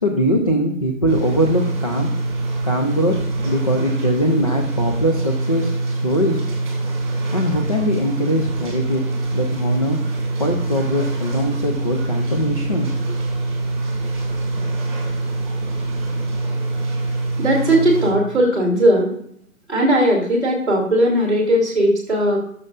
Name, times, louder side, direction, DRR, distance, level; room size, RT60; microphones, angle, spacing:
voice 1, 0.0-2.1 2.6-6.4 7.3-9.0 9.3-10.0 10.4-13.2, equal, 25° left, 0 dB, 0.6 m, -21 dB
sound 1, 1.1-18.1, right 2 dB, 20° right, 2.0 m, -24 dB
voice 2, 17.4-19.1 19.7-22.4, right 1 dB, ahead, -10 dB, 1.4 m, -17 dB
16.0 x 6.7 x 2.5 m, 0.68 s
figure-of-eight pair, 160°, 41 cm